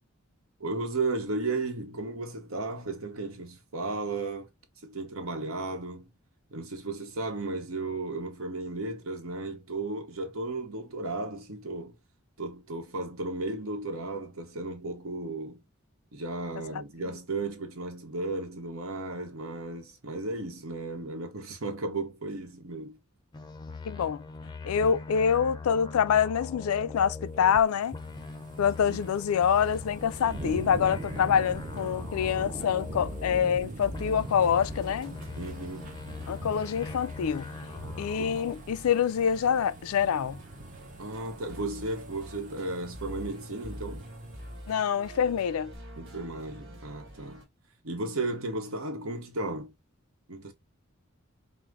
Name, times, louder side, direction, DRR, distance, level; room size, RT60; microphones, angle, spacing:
voice 1, 0.6-4.5 4.8-6.1 6.5-12.0 12.4-15.6 16.1-23.0 28.8-29.1 35.4-36.0 38.1-38.4 41.0-44.1 46.0-47.4 47.8-49.7 50.3-50.5, right 2 dB, 80° right, 1.0 m, -34 dB
sound 1, 23.3-27.6 27.9-33.6 33.9-38.5, left 3 dB, 20° left, 0.5 m, -41 dB
voice 2, 23.9-24.2 24.6-28.0 28.6-35.2 36.3-37.5 38.0-40.4 44.7-45.7, left 7 dB, 90° left, 0.4 m, -26 dB
sound 2, 27.2-45.3 45.7-45.8, right 3 dB, 40° right, 0.6 m, -44 dB
sound 3, 29.5-47.4, equal, 60° right, 1.6 m, -46 dB
4.9 x 2.0 x 3.6 m
head